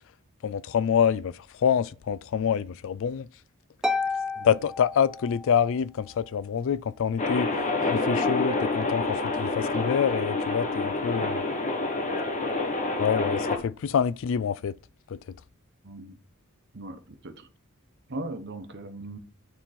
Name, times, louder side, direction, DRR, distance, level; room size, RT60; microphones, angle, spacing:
voice 1, 0.4-3.3 4.4-7.5 7.9-11.4 13.0-14.7 15.1-15.2, left 7 dB, 60° left, 0.3 m, -26 dB
Harp, 3.8-5.7, left 3 dB, 5° right, 0.5 m, -31 dB
sound 1, 7.2-13.6, left 2 dB, 35° left, 1.2 m, -27 dB
voice 2, 15.8-16.2 16.7-17.5 18.1-19.2, right 2 dB, 50° right, 1.0 m, -38 dB
9.7 x 3.7 x 4.2 m
head